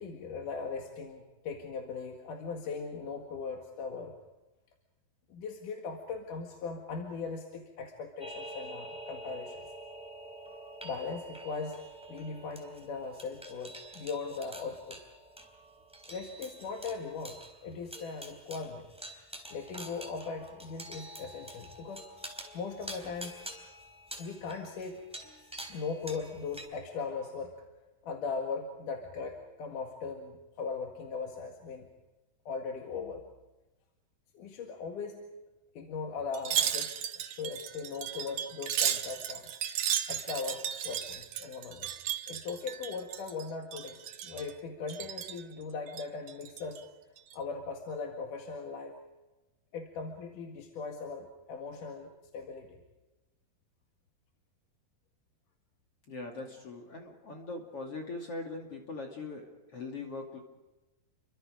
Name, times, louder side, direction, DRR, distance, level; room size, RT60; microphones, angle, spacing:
voice 1, 0.0-4.2 5.3-9.6 10.8-11.8 12.1-15.0 16.1-18.9 19.5-22.1 22.5-23.4 24.2-25.0 25.7-27.6 28.0-31.9 32.5-33.2 34.3-35.3 35.7-39.5 40.1-41.9 42.3-46.9 47.3-49.0 49.7-52.8, left 4 dB, 65° left, 2 dB, 3.3 m, -39 dB
sound 1, 8.2-26.7, right 1 dB, ahead, 3.3 m, -47 dB
Wind chime, 36.3-43.4 43.7-44.5 44.9-45.4 45.9-46.8 47.2-47.3, right 10 dB, 65° right, 2.5 m, -34 dB
voice 2, 56.1-59.4 59.7-60.4, left 3 dB, 45° left, 1 dB, 3.1 m, -41 dB
30.0 x 24.0 x 5.0 m, 1.1 s
omnidirectional pair, 4.2 m